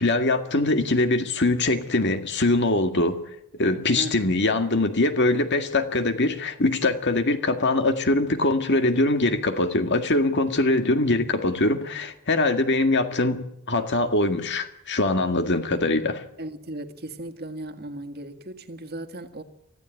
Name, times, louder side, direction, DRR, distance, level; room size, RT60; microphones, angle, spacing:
voice 1, 0.0-3.2 3.6-16.2, left 2 dB, 55° left, 2.0 m, -23 dB
voice 2, 4.0-4.4 16.4-19.4, right 1 dB, 45° right, 1.8 m, -36 dB
24.0 x 15.0 x 9.2 m
head